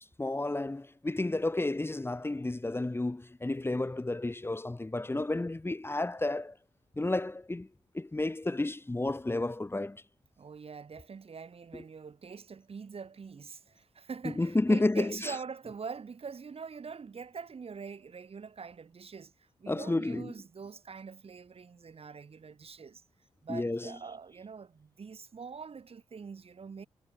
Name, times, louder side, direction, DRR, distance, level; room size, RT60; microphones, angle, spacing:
voice 1, 0.2-6.6 7.0-7.7 7.9-10.0 11.7-11.8 14.4-15.3 19.7-20.3 23.5-23.9, left 2 dB, 20° left, 1.6 m, -31 dB
voice 2, 10.4-23.0 23.4-26.9, right 5 dB, 55° right, 7.9 m, -44 dB
cardioid pair, 55°, 12 cm